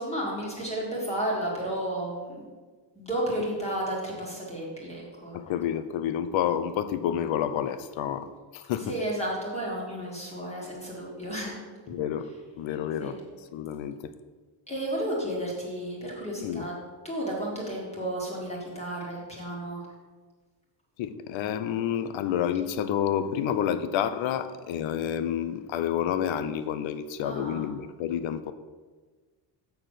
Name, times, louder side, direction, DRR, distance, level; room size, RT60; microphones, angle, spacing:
voice 1, 0.0-2.5 2.9-5.3 8.8-11.5 13.0-13.1 14.7-16.7 17.0-19.9 27.2-27.7, right 1 dB, 15° left, -4 dB, 1.7 m, -32 dB
voice 2, 5.3-9.0 11.9-12.3 12.6-13.2 13.5-14.1 16.4-16.7 21.0-28.5, left 9 dB, 80° left, 12 dB, 0.7 m, -29 dB
7.1 x 6.0 x 6.5 m, 1.4 s
cardioid pair, 180°, 46 cm